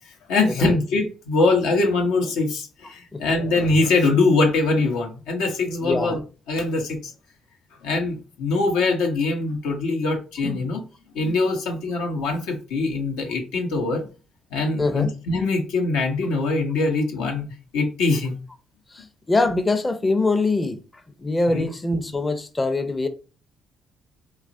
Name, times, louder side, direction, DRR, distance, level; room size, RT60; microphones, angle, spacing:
voice 1, 0.3-6.2 6.5-7.0 7.8-10.8 11.1-14.0 14.5-17.5 17.7-18.4 21.5-21.7, left 3 dB, 80° left, 0.7 m, -22 dB
voice 2, 5.8-6.2 14.8-15.1 18.9-20.8 21.2-23.1, left 2 dB, 25° left, 0.5 m, -23 dB
3.0 x 2.3 x 2.6 m
hypercardioid pair, 55°, 0 cm